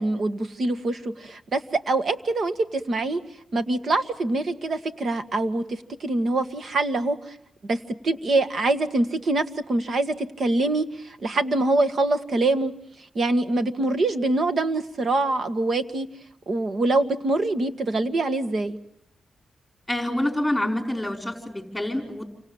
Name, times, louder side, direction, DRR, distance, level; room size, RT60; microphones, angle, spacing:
voice 1, 0.0-3.2 3.5-7.4 7.6-12.7 13.2-16.1 16.5-18.8, right 2 dB, 55° right, 9 dB, 1.8 m, -24 dB
voice 2, 19.9-22.3, left 1 dB, 5° left, 4 dB, 4.8 m, -27 dB
29.0 x 25.0 x 7.4 m, 0.76 s
cardioid pair, 95°, 0 cm